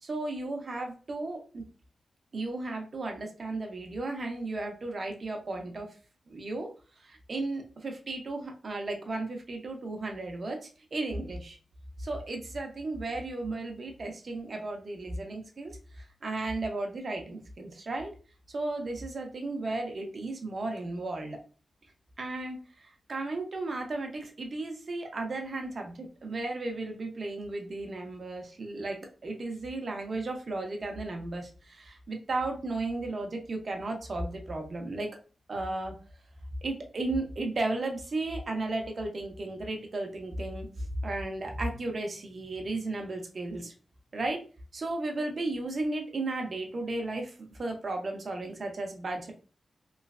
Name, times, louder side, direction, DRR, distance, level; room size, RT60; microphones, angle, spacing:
voice 1, 0.0-1.6 2.3-5.9 6.3-6.7 7.0-11.6 12.0-18.1 18.5-21.4 22.2-35.1 35.5-35.9 36.6-43.7 44.1-44.4 44.7-49.3, right 2 dB, 45° right, 3 dB, 0.7 m, -34 dB
3.1 x 3.1 x 2.5 m, 0.36 s
wide cardioid pair, 150°, 0 cm